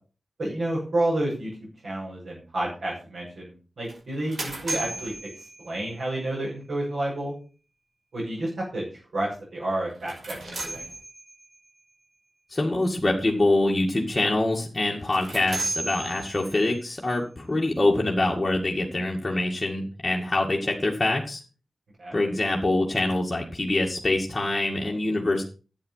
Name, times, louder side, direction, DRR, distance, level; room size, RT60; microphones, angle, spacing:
voice 1, 0.4-7.3 8.1-8.8 9.1-10.9 22.0-22.2, right 1 dB, 85° right, -6 dB, 7.1 m, -30 dB
sound 1, 3.9-6.1 9.9-11.6 14.9-16.7, right 2 dB, 65° right, 5.4 m, -35 dB
voice 2, 12.5-21.4 22.1-25.5, left 2 dB, 20° left, -2 dB, 2.3 m, -25 dB
12.0 x 8.9 x 5.7 m, 0.36 s
wide cardioid pair, 115°, 0 cm